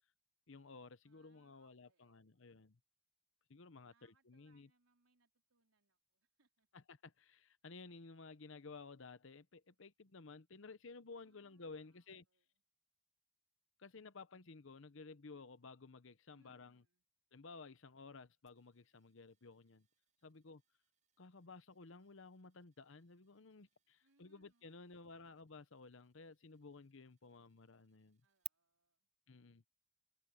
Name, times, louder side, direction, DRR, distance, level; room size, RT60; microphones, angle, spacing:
voice 1, 0.5-2.8 3.5-4.7 6.7-12.3 13.8-16.8 17.3-19.9 20.2-20.6 21.2-28.2 29.3-29.6, left 4 dB, 60° left, 0.8 m, -55 dB
voice 2, 1.0-2.7 3.9-6.7 11.2-12.6 16.3-17.0 24.0-25.2 28.2-29.1, right 3 dB, 85° right, 4.1 m, -80 dB
sound 1, 18.5-28.5, right 15 dB, 35° right, 0.4 m, -61 dB
head